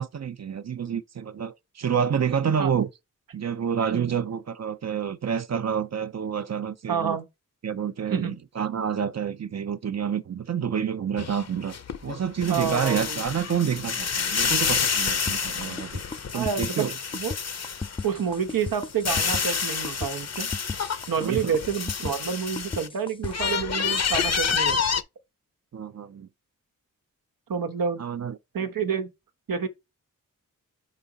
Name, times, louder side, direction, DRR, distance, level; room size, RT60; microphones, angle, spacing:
voice 1, 0.0-2.9 3.3-7.2 7.6-11.8 12.0-16.0 16.3-16.9 21.2-21.5 25.7-26.3 28.0-28.4, right 7 dB, 50° right, 0.7 m, -28 dB
voice 2, 6.9-7.2 8.1-8.4 12.5-13.2 16.3-17.3 18.0-20.5 21.1-24.8 27.5-28.0 28.5-29.1 29.5-29.7, right 7 dB, 80° right, 1.1 m, -28 dB
sound 1, 11.2-18.1 18.5-22.9 23.2-25.0, left 6 dB, 50° left, 0.8 m, -28 dB
sound 2, 15.3-23.3, left 4 dB, 15° left, 0.4 m, -35 dB
5.1 x 4.9 x 4.0 m
cardioid pair, 65°, 34 cm